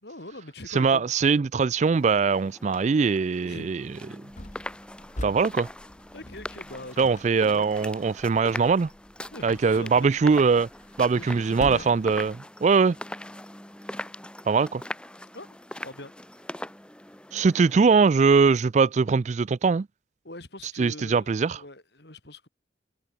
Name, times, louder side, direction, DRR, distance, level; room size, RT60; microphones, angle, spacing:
voice 1, 0.0-1.1 3.4-3.9 5.3-5.4 6.1-7.7 9.3-10.5 11.1-11.9 15.3-16.1 20.2-22.5, left 1 dB, 65° left, 5.2 m, -43 dB
voice 2, 0.7-3.8 5.2-5.7 7.0-8.9 9.4-10.7 11.0-13.0 14.5-14.8 17.3-19.9 20.8-21.6, right 5 dB, 40° right, 0.3 m, -21 dB
sound 1, 1.9-17.9, left 1 dB, 5° left, 1.6 m, -41 dB
sound 2, 4.3-12.4, left 1 dB, 40° left, 2.2 m, -43 dB
head